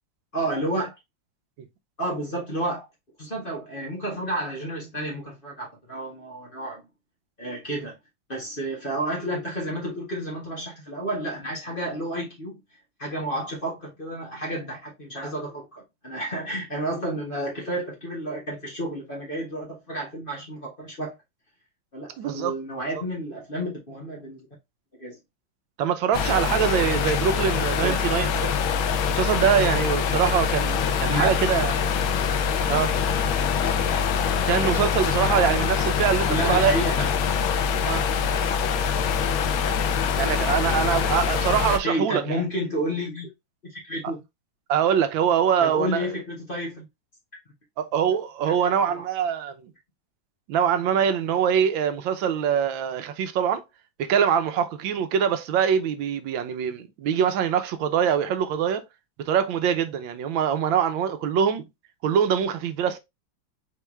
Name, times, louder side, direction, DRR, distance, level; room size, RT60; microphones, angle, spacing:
voice 1, 0.3-0.9 2.0-2.9 3.2-6.8 7.4-7.9 8.3-12.6 13.0-21.1 21.9-24.4 25.0-25.2 27.8-28.0 31.1-31.3 36.3-37.1 41.8-43.3 43.6-44.2 45.6-46.8 48.4-49.0, right 1 dB, 30° left, 1.5 m, -31 dB
voice 2, 22.2-22.5 25.8-28.5 29.1-31.9 32.7-33.0 34.5-36.8 37.8-38.1 40.2-42.2 44.7-46.1 47.8-49.7 50.5-53.6 54.0-58.8 59.2-61.6 62.0-63.0, right 8 dB, 80° right, 1.4 m, -23 dB
sound 1, 26.1-41.8, left 7 dB, 90° left, 1.4 m, -24 dB
4.5 x 3.4 x 3.1 m
omnidirectional pair, 2.1 m